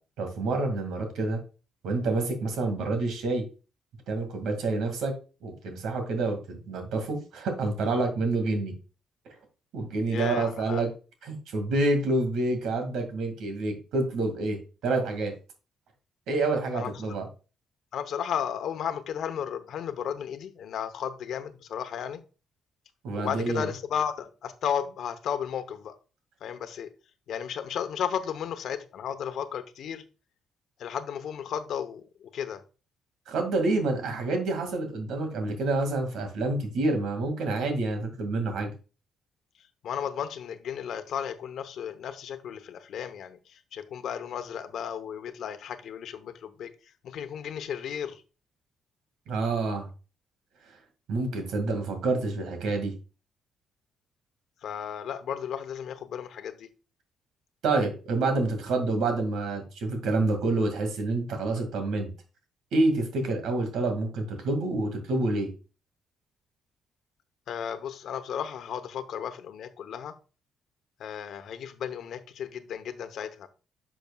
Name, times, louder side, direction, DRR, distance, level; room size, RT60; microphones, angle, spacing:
voice 1, 0.2-1.4 1.8-3.5 4.1-5.1 5.4-8.7 9.7-10.9 11.2-15.3 16.3-17.3 23.0-23.6 33.3-38.7 49.3-49.9 51.1-52.9 57.6-62.1 62.7-65.5, right 2 dB, 80° right, 2.0 m, -28 dB
voice 2, 10.1-10.8 16.7-17.2 17.9-22.2 23.1-25.9 26.4-26.9 27.3-30.0 30.8-32.6 39.8-46.7 47.0-48.2 54.6-56.7 67.5-70.1 71.0-73.5, left 8 dB, 70° left, 0.8 m, -34 dB
10.5 x 6.1 x 2.3 m
cardioid pair, 90°, 0 cm